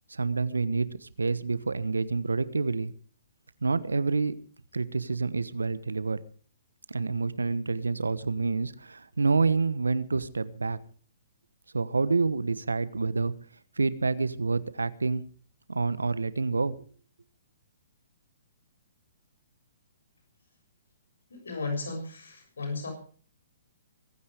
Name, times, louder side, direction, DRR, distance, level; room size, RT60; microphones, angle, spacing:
voice 1, 0.1-2.9 3.6-4.3 4.7-6.2 6.9-10.8 11.7-13.3 13.8-15.2 15.7-16.7, right 4 dB, 90° right, 16 dB, 1.2 m, -28 dB
voice 2, 21.3-22.9, left 3 dB, 80° left, 3 dB, 6.7 m, -34 dB
23.0 x 9.9 x 5.0 m, 0.42 s
hypercardioid pair, 130°, 0 cm